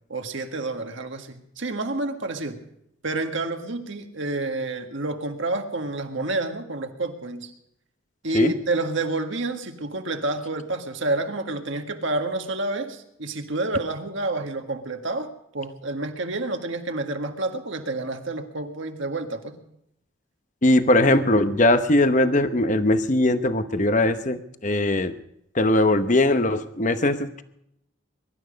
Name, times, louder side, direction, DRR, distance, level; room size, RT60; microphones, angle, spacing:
voice 1, 0.1-2.6 3.0-7.5 8.2-19.6, right 2 dB, 60° right, 5 dB, 1.7 m, -29 dB
voice 2, 20.6-25.2 25.5-27.4, left 1 dB, 35° left, 10 dB, 0.9 m, -20 dB
22.5 x 12.0 x 5.2 m, 0.78 s
head